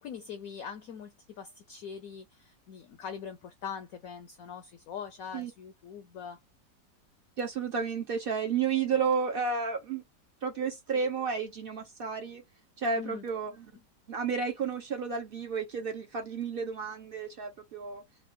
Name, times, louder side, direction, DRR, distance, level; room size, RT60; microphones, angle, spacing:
voice 1, 0.0-6.4 13.0-13.2, left 7 dB, 70° left, 0.8 m, -42 dB
voice 2, 7.4-10.0 10.4-12.4 12.8-13.7 14.1-18.0, right 5 dB, 65° right, 0.5 m, -32 dB
3.6 x 2.4 x 3.6 m
omnidirectional pair, 1.9 m